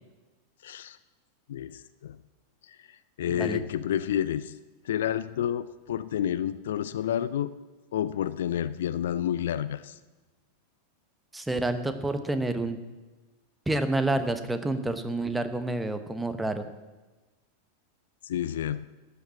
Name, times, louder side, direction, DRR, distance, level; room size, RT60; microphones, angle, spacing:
voice 1, 0.6-1.0 1.5-2.2 2.6-4.6 4.8-7.6 7.9-10.0 18.2-18.9, left 10 dB, 60° left, 15 dB, 0.5 m, -30 dB
voice 2, 11.3-12.8 13.7-16.6, right 2 dB, 5° right, 9 dB, 1.1 m, -28 dB
13.0 x 8.2 x 7.5 m, 1.2 s
figure-of-eight pair, 90°, 0 cm